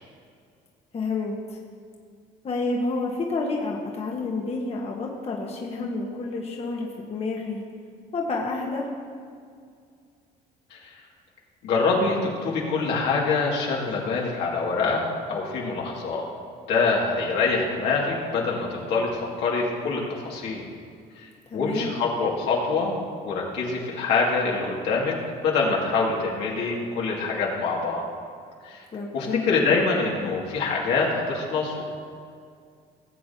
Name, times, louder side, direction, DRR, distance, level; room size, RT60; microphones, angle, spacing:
voice 1, 0.9-1.6 2.4-7.6 8.1-8.9 21.5-22.0 28.9-29.5, left 3 dB, 40° left, 0 dB, 1.2 m, -29 dB
voice 2, 11.6-16.2 16.7-20.6 21.5-22.9 23.2-25.1 25.4-28.0 28.6-28.8 29.1-31.8, left 4 dB, 85° left, -3 dB, 2.2 m, -25 dB
17.5 x 7.5 x 2.8 m, 2.2 s
cardioid pair, 110°, 17 cm